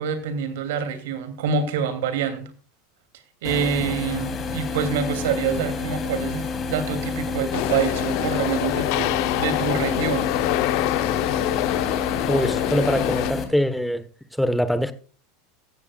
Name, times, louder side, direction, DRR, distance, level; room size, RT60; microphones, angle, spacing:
voice 1, 0.0-2.5 3.4-10.3, right 7 dB, 65° right, 2.7 m, -26 dB
sound 1, 3.4-13.4, left 4 dB, 30° left, 3.1 m, -29 dB
sound 2, 7.5-13.3, left 17 dB, 55° left, 0.6 m, -25 dB
voice 2, 12.3-14.0 14.4-14.9, equal, 5° left, 1.2 m, -23 dB
16.0 x 14.5 x 2.4 m
hypercardioid pair, 85°, 0 cm